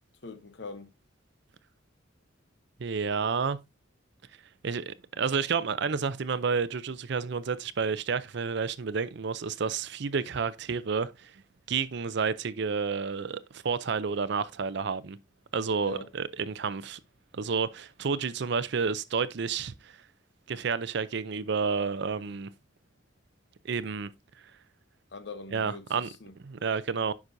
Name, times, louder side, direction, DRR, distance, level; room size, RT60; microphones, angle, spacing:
voice 1, 0.2-0.9 15.8-16.1 25.1-26.3, left 3 dB, 65° left, 0.9 m, -42 dB
voice 2, 2.8-3.6 4.6-11.3 11.7-15.2 15.5-17.0 17.3-20.0 20.5-22.5 23.6-24.1 25.5-26.1 26.4-27.1, right 5 dB, 60° right, 0.5 m, -30 dB
9.7 x 6.0 x 2.6 m
head